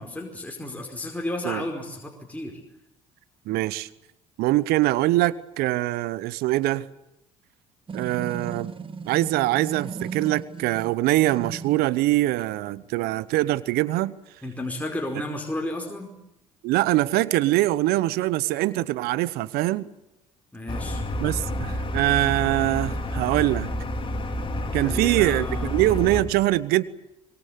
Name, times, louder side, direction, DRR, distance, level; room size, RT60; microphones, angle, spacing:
voice 1, 0.0-2.6 14.4-16.1 20.5-21.0 24.7-25.7, left 1 dB, 10° left, 1 dB, 5.0 m, -33 dB
voice 2, 3.5-3.9 4.4-6.9 7.9-8.7 9.1-14.1 16.6-19.9 21.2-23.7 24.7-26.8, right 17 dB, 65° right, 18 dB, 1.0 m, -23 dB
sound 1, 7.9-11.9, right 5 dB, 30° right, 2.0 m, -36 dB
sound 2, 20.7-26.2, left 1 dB, 30° left, 4.3 m, -29 dB
24.5 x 22.5 x 8.3 m, 0.89 s
hypercardioid pair, 55°, 17 cm